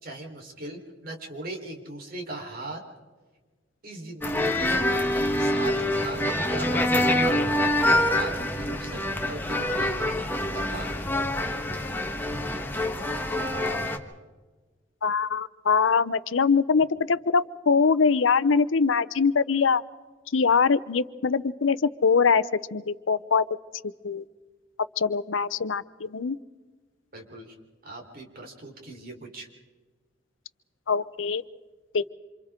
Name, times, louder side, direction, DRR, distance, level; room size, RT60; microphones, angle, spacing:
voice 1, 0.0-2.8 3.8-6.9 7.8-10.9 27.1-27.6 27.8-29.5, right 2 dB, 50° right, 2 dB, 4.1 m, -39 dB
sound 1, 4.2-14.0, left 1 dB, 10° left, 1.4 m, -25 dB
voice 2, 15.0-19.8 20.3-23.4 24.0-24.2 25.0-26.4 30.9-31.4 31.9-32.1, left 5 dB, 80° left, 16 dB, 0.7 m, -23 dB
28.0 x 27.5 x 3.8 m, 1.3 s
head